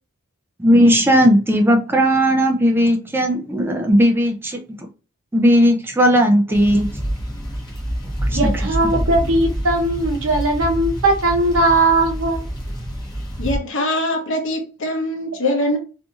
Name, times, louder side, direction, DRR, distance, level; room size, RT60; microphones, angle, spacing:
voice 1, 0.6-4.8 5.3-6.9 8.3-8.4, equal, 10° right, 0.3 m, -16 dB
sound 1, 6.5-13.6, equal, 20° left, 0.7 m, -26 dB
voice 2, 8.3-12.4, right 2 dB, 70° right, 0.8 m, -18 dB
voice 3, 13.4-15.8, left 1 dB, 60° left, 0.8 m, -22 dB
2.8 x 2.6 x 2.3 m
head